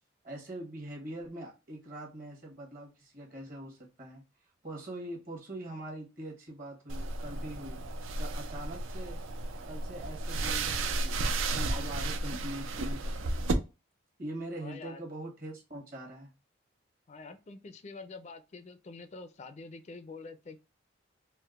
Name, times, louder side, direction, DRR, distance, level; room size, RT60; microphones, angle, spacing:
voice 1, 0.2-4.2 4.6-9.2 9.7-13.6 14.2-16.3, right 1 dB, 45° right, 1.1 m, -43 dB
sound 1, 6.9-13.5, right 2 dB, 85° right, 0.5 m, -33 dB
voice 2, 14.6-15.0 17.1-20.6, left 3 dB, 35° left, 0.4 m, -46 dB
4.4 x 2.1 x 2.3 m
head